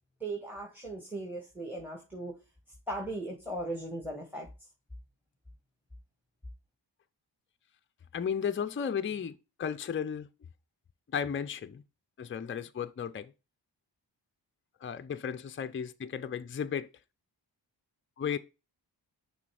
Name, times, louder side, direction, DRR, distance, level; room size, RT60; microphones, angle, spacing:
voice 1, 0.2-2.4 2.9-4.5, right 2 dB, 5° right, 1.7 m, -38 dB
voice 2, 8.1-10.3 11.1-11.8 12.2-13.3 14.8-16.9 18.2-18.4, left 7 dB, 30° left, 0.5 m, -34 dB
6.0 x 3.3 x 4.7 m
cardioid pair, 55°, 44 cm